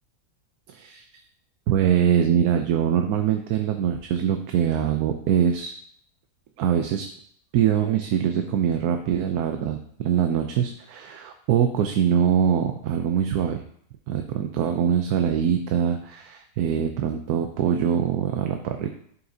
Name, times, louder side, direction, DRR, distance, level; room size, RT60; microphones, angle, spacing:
voice 1, 0.7-1.2 1.7-5.7 6.6-7.0 7.5-13.6 14.1-18.9, right 9 dB, 75° right, 5 dB, 1.1 m, -23 dB
11.5 x 5.7 x 2.7 m, 0.64 s
omnidirectional pair, 1.6 m